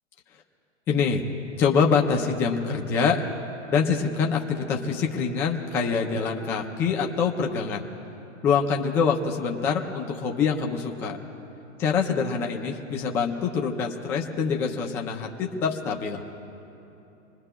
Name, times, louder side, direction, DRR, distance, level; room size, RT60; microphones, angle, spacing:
voice 1, 0.9-1.2 1.6-3.2 3.7-7.8 8.4-11.2 11.8-16.2, left 5 dB, 5° left, 1 dB, 0.3 m, -25 dB
27.5 x 20.5 x 2.2 m, 2.9 s
hypercardioid pair, 135°, 39 cm